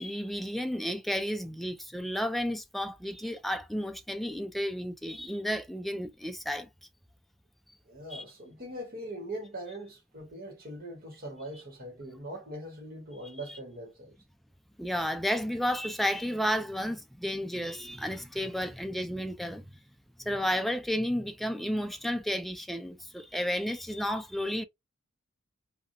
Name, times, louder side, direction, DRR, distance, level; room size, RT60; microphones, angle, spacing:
voice 1, 0.0-6.7 8.1-8.2 14.8-19.8 20.2-24.6, equal, ahead, 0.3 m, -32 dB
voice 2, 7.9-14.1, right 1 dB, 45° right, 1.1 m, -41 dB
2.9 x 2.3 x 2.6 m
head